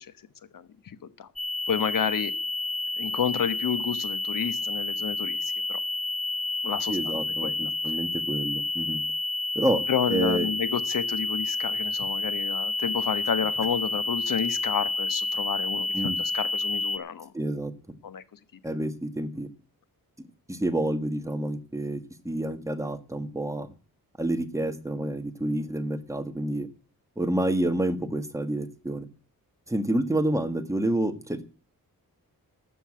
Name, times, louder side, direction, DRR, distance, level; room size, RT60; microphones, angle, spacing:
sound 1, 1.4-17.0, left 2 dB, 20° left, 1.6 m, -30 dB
voice 1, 1.7-2.3 3.0-5.4 5.7-5.8 6.6-7.7 9.9-17.3 18.0-18.2, left 8 dB, 65° left, 14 dB, 1.2 m, -30 dB
voice 2, 6.9-9.0 9.5-9.8 10.1-10.5 15.9-16.2 17.3-17.7 18.6-19.5 20.5-23.7 24.2-26.7 27.2-29.0 29.7-31.4, right 1 dB, 10° right, 8 dB, 1.5 m, -28 dB
12.5 x 7.0 x 8.7 m, 0.36 s
wide cardioid pair, 125°, 36 cm